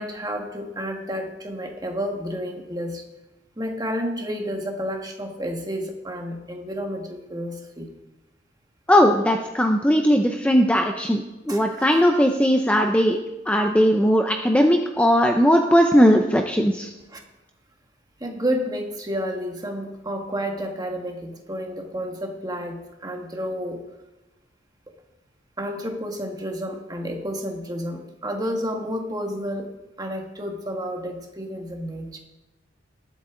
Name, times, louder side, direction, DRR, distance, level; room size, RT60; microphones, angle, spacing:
voice 1, 0.0-3.0 3.6-7.9 11.5-12.0 17.1-17.2 18.2-23.8 25.6-32.2, equal, 20° right, 3 dB, 1.6 m, -30 dB
voice 2, 8.9-13.2 13.5-16.9, equal, 5° left, 4 dB, 0.6 m, -18 dB
20.0 x 8.1 x 3.8 m, 1.0 s
head